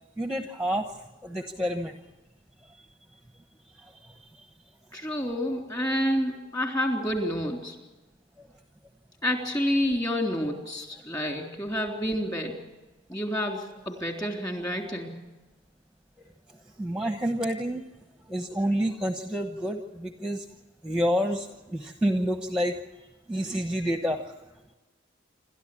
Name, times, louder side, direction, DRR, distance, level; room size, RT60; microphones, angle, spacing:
voice 1, 0.2-0.9 1.2-1.9 16.8-17.8 18.3-20.4 20.8-22.7 23.3-24.2, equal, 5° right, 5 dB, 1.1 m, -28 dB
voice 2, 4.9-7.8 9.2-12.6 13.1-15.1, equal, 20° left, 2 dB, 3.4 m, -29 dB
28.0 x 13.0 x 8.5 m, 1.1 s
head